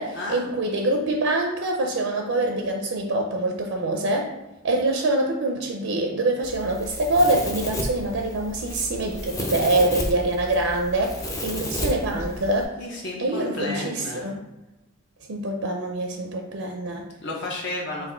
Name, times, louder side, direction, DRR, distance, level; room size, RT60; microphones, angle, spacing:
voice 1, 0.0-4.3 4.6-12.7 13.2-14.4 15.3-17.0, right 2 dB, 65° right, 2 dB, 0.5 m, -25 dB
Domestic sounds home sounds, 6.4-12.6, equal, 15° left, 0.4 m, -32 dB
voice 2, 12.8-14.3 17.2-18.1, left 2 dB, 55° left, -2 dB, 0.7 m, -32 dB
4.0 x 2.6 x 4.3 m, 0.99 s
head